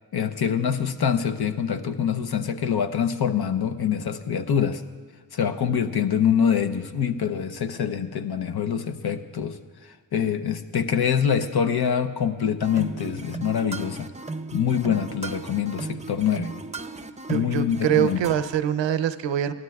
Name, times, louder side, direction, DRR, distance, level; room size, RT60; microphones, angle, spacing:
voice 1, 0.1-4.8 5.3-9.6 10.1-14.1 14.5-16.5 17.3-18.3, left 8 dB, 55° left, 10 dB, 0.8 m, -25 dB
sound 1, 12.6-18.6, right 3 dB, 15° right, 0.6 m, -36 dB
voice 2, 17.3-19.5, right 10 dB, 70° right, 13 dB, 0.7 m, -24 dB
17.0 x 12.5 x 2.4 m, 1.5 s
supercardioid pair, 40°, 47 cm